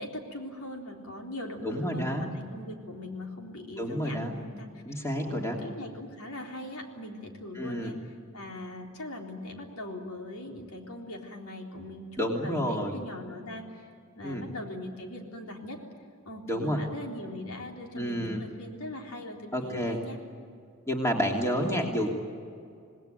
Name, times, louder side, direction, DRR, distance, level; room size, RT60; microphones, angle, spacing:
voice 1, 0.0-8.0 8.3-13.9 14.2-15.8 16.2-20.2, left 1 dB, 85° left, 1 dB, 3.9 m, -40 dB
voice 2, 1.6-2.3 3.8-4.4 4.8-5.6 7.5-7.9 12.2-13.0 14.2-14.4 16.5-16.8 17.9-18.4 19.5-20.0 20.9-22.1, equal, 10° left, 1 dB, 2.9 m, -29 dB
27.5 x 19.0 x 9.2 m, 2.4 s
head